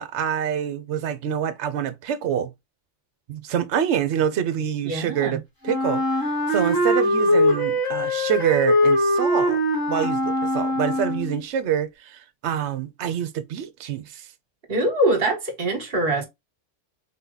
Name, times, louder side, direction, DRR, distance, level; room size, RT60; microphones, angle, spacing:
voice 1, 0.0-2.5 3.3-9.6 9.9-14.3, right 8 dB, 70° right, 0.9 m, -26 dB
voice 2, 4.8-5.4 14.7-16.3, right 1 dB, 50° right, 1.6 m, -23 dB
Wind instrument woodwind instrument, 5.6-11.4, left 1 dB, 15° left, 1.6 m, -22 dB
3.8 x 2.9 x 3.8 m
omnidirectional pair, 1.3 m